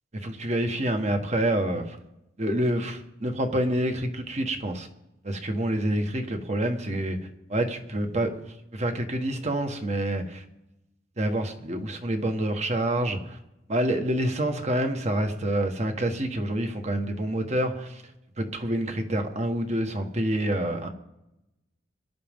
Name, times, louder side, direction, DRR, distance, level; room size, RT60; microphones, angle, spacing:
voice 1, 0.2-2.0 2.4-4.9 5.2-7.2 7.5-8.4 8.7-10.4 11.2-13.4 13.7-18.0 18.4-20.9, right 1 dB, 35° right, 5 dB, 1.5 m, -27 dB
24.5 x 11.5 x 3.7 m, 0.91 s
head